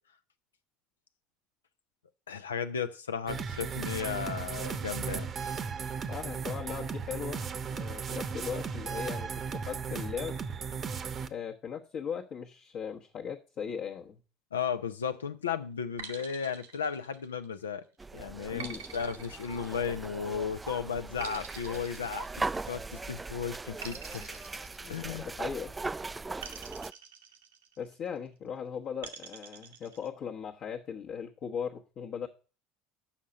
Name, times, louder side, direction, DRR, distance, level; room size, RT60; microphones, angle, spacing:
voice 1, 2.3-5.3 14.5-17.8 18.1-18.7 18.9-22.3 22.7-24.4 24.9-25.3, left 7 dB, 85° left, 0.6 m, -35 dB
sound 1, 3.3-11.3, right 6 dB, 35° right, 0.8 m, -36 dB
voice 2, 6.1-7.5 7.7-10.4 11.3-14.2 18.5-18.9 24.8-26.0 26.4-26.6 27.8-32.3, left 7 dB, 50° left, 1.1 m, -38 dB
sound 2, 16.0-17.7 18.6-20.3 21.2-22.9 23.8-25.6 26.4-28.0 29.0-30.1, right 7 dB, 80° right, 1.0 m, -46 dB
sound 3, 18.0-26.9, right 3 dB, 15° right, 0.3 m, -39 dB
7.2 x 5.8 x 6.4 m
hypercardioid pair, 70°, 0 cm